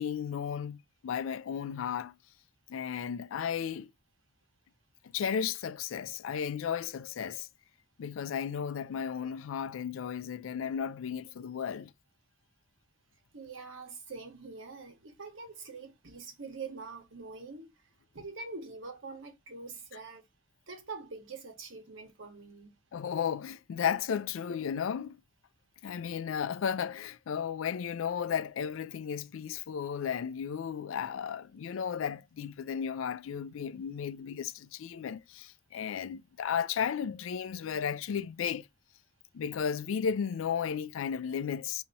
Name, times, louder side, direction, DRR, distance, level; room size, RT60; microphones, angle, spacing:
voice 1, 0.0-2.1 2.7-3.9 5.1-7.5 8.0-11.9 22.9-25.2 25.8-38.7 39.3-41.8, left 7 dB, 85° left, 0.4 m, -34 dB
voice 2, 13.3-17.7 18.1-20.3 20.7-22.8, right 4 dB, 80° right, 1.2 m, -44 dB
5.1 x 2.8 x 2.6 m
head